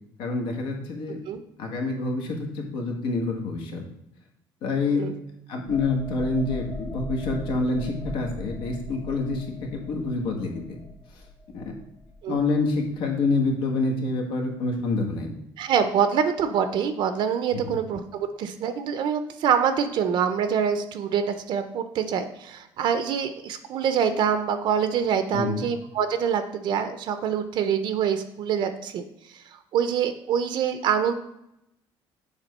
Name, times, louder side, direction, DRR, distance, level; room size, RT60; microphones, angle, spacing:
voice 1, 0.2-1.2 1.6-3.8 4.6-5.1 5.5-10.8 11.1-11.3 11.5-11.7 12.3-15.3 17.5-17.8 25.3-25.6, left 3 dB, 85° left, 2 dB, 1.4 m, -27 dB
sound 1, 5.7-13.1 13.5-13.7, left 2 dB, 35° left, 1.3 m, -40 dB
voice 2, 15.6-29.0 29.3-29.4 29.7-31.1, right 7 dB, 60° right, 9 dB, 0.5 m, -25 dB
7.3 x 3.4 x 5.4 m, 0.82 s
cardioid pair, 145°, 9 cm